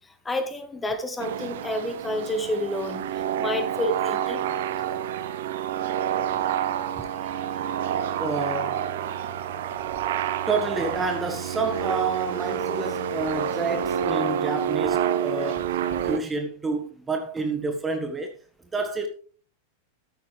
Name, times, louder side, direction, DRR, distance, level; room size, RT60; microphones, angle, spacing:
voice 1, 0.3-4.4, left 1 dB, 10° left, 2.0 m, -29 dB
sound 1, 1.2-16.2, right 9 dB, 55° right, 1.1 m, -28 dB
voice 2, 8.2-8.8 10.5-15.6 16.0-18.3 18.7-19.1, right 3 dB, 15° right, 1.5 m, -29 dB
13.5 x 9.4 x 3.3 m
figure-of-eight pair, 90°, 0 cm